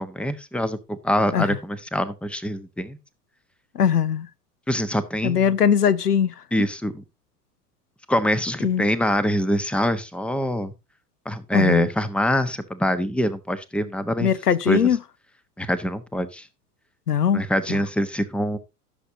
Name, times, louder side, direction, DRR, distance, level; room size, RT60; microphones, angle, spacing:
voice 1, 0.0-3.0 4.7-5.5 6.5-7.0 8.1-10.7 11.2-14.3 14.7-14.9 15.6-16.5 17.3-18.6, equal, ahead, 1.1 m, -24 dB
voice 2, 3.7-4.3 5.2-6.3 8.6-8.9 11.5-11.9 14.2-15.0 17.1-17.4 17.7-17.8, left 8 dB, 80° left, 0.8 m, -20 dB
16.0 x 7.3 x 2.8 m
figure-of-eight pair, 85°, 46 cm